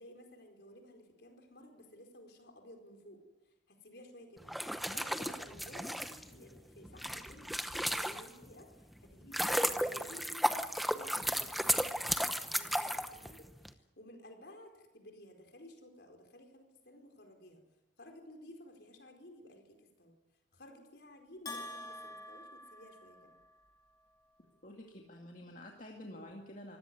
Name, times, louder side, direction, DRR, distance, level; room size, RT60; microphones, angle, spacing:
voice 1, 0.0-17.6 18.0-20.1 20.5-23.4, left 1 dB, 60° left, 5 dB, 4.7 m, -55 dB
sound 1, 4.4-8.5 9.0-13.7, equal, ahead, 0.9 m, -34 dB
Bell, 21.5-23.6, left 1 dB, 20° left, 2.7 m, -46 dB
voice 2, 24.6-26.8, left 1 dB, 45° left, 1 dB, 2.2 m, -49 dB
24.5 x 16.0 x 9.6 m, 1.0 s
head